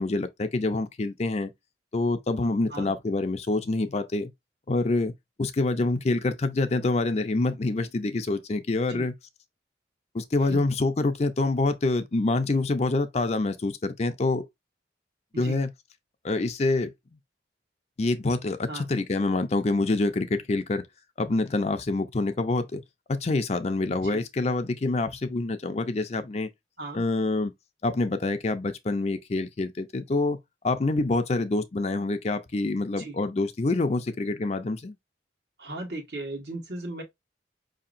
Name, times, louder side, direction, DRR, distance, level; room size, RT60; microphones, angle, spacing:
voice 1, 0.0-1.5 1.9-4.3 4.7-9.1 10.1-14.4 15.4-15.7 16.2-16.9 18.0-20.8 21.2-22.8 23.1-26.5 26.9-27.5 27.8-30.4 30.6-34.9, left 2 dB, 35° left, 0.5 m, -26 dB
voice 2, 35.6-37.0, right 2 dB, 65° right, 1.3 m, -37 dB
5.1 x 2.8 x 2.5 m
head